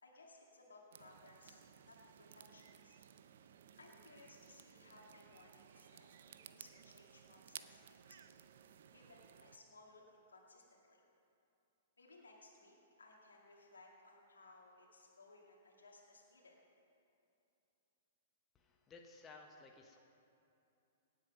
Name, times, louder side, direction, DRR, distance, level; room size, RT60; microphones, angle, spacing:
voice 1, 0.0-1.6 1.9-3.1 3.8-7.8 8.1-8.4 8.9-11.0 12.0-16.6, left 2 dB, 85° left, -2 dB, 2.0 m, -62 dB
sound 1, 0.9-9.6, right 9 dB, 65° right, 0.6 m, -58 dB
voice 2, 18.5-20.0, left 3 dB, 20° left, 2 dB, 1.1 m, -57 dB
18.0 x 8.1 x 5.4 m, 2.8 s
hypercardioid pair, 115°, 0 cm